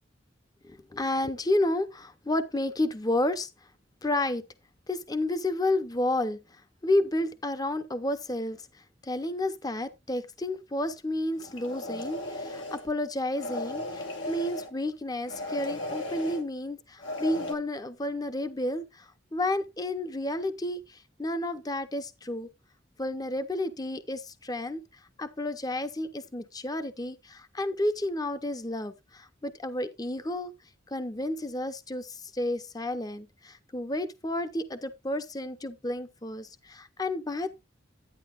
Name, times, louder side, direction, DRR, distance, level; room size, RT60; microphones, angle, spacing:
voice 1, 0.6-3.5 4.0-4.4 4.9-8.6 9.0-22.5 23.0-24.8 25.2-30.5 30.9-37.5, left 1 dB, 20° left, 0.8 m, -31 dB
sound 1, 11.4-12.9 13.3-14.7 15.3-16.4 17.0-17.5, left 1 dB, 85° left, 2.3 m, -36 dB
11.5 x 9.3 x 2.4 m
head